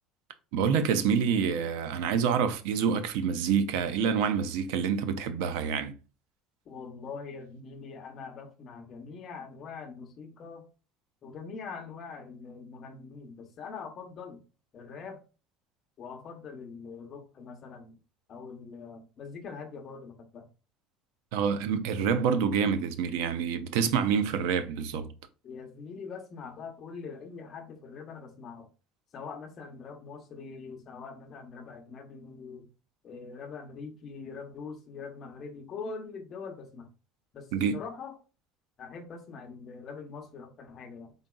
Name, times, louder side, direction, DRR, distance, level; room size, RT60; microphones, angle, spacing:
voice 1, 0.5-5.9 21.3-25.1 37.5-37.8, right 7 dB, 85° right, 0.5 m, -27 dB
voice 2, 6.7-10.7 11.2-14.4 14.7-15.2 16.0-17.9 18.3-20.5 25.4-28.7 29.1-32.6 33.0-36.9 37.3-38.1 38.8-41.1, left 5 dB, 30° left, 0.8 m, -43 dB
3.9 x 3.9 x 2.2 m
cardioid pair, 175°, 0 cm